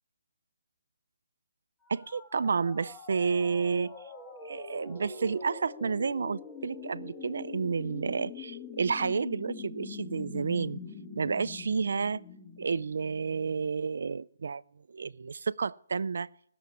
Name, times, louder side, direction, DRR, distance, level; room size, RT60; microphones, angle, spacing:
sound 1, 1.9-13.7, left 5 dB, 10° left, 1.3 m, -44 dB
voice 1, 1.9-3.9 4.4-10.8 11.2-12.2 12.6-14.6 14.9-16.3, right 5 dB, 70° right, 0.5 m, -30 dB
18.0 x 7.1 x 9.4 m
hypercardioid pair, 165°, 0 cm